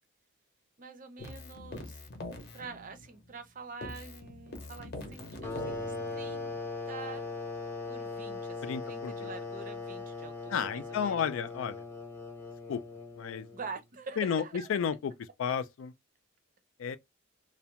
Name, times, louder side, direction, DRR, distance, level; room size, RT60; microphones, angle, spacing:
voice 1, 0.8-2.0 2.5-6.5 6.9-7.2 7.9-11.5 13.5-14.7, right 4 dB, 40° right, 0.5 m, -46 dB
Keyboard (musical), 1.2-3.5 3.8-6.6, left 1 dB, 55° left, 0.7 m, -44 dB
sound 1, 5.4-13.8, left 3 dB, 10° left, 0.5 m, -39 dB
voice 2, 8.6-9.3 10.5-11.7 12.7-12.8 13.2-13.5 14.2-15.1 15.4-15.9 16.8-17.0, left 7 dB, 75° left, 0.3 m, -32 dB
2.4 x 2.1 x 2.8 m
head